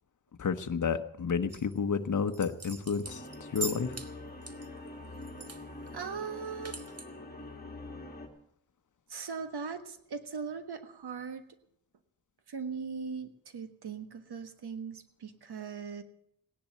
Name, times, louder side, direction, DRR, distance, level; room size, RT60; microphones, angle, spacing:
voice 1, 0.4-3.2 3.5-3.9, left 6 dB, 40° left, 7 dB, 1.1 m, -30 dB
sound 1, 1.5-1.8 2.3-4.1 4.4-5.6 5.9-6.0 6.3-7.1, right 3 dB, 35° right, 1.6 m, -41 dB
sound 2, 3.0-8.3, left 2 dB, 20° left, 2.4 m, -45 dB
voice 2, 5.9-6.8 9.1-11.4 12.5-16.0, right 5 dB, 60° right, 10 dB, 1.5 m, -39 dB
17.0 x 10.5 x 7.6 m, 0.69 s
wide cardioid pair, 100°, 45 cm